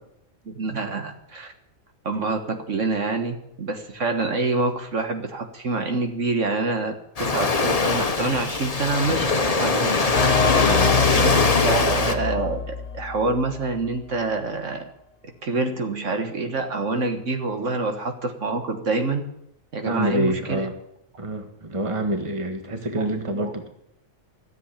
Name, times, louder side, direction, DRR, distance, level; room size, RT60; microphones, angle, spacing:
voice 1, 0.5-1.5 2.0-10.1 11.1-11.4 11.6-14.8 15.2-19.3 19.7-20.7 23.0-23.1 23.3-23.5, right 3 dB, 65° right, 5 dB, 1.7 m, -26 dB
Waves surf, 7.2-12.1, left 3 dB, 30° left, 1.0 m, -21 dB
sound 1, 10.2-13.7, left 5 dB, 65° left, 1.3 m, -25 dB
voice 2, 10.5-11.2 19.9-20.7 21.2-23.7, right 1 dB, 25° right, 6 dB, 1.5 m, -27 dB
13.5 x 7.9 x 10.0 m, 0.78 s
omnidirectional pair, 1.4 m